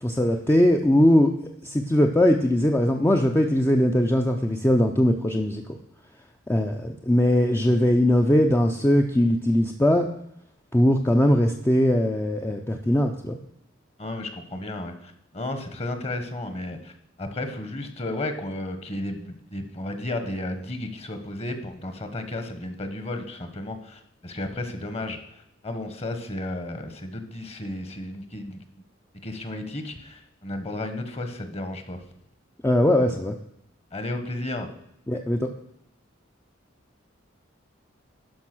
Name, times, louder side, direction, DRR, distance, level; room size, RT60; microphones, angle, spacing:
voice 1, 0.0-1.3 1.6-5.6 6.5-10.1 10.7-13.4 32.6-33.3 35.1-35.5, left 1 dB, 10° left, 3 dB, 0.6 m, -20 dB
voice 2, 14.0-16.9 17.2-25.2 25.6-28.6 29.2-32.0 33.9-34.7, left 1 dB, 30° left, 8 dB, 1.3 m, -33 dB
12.0 x 5.4 x 6.1 m, 0.77 s
head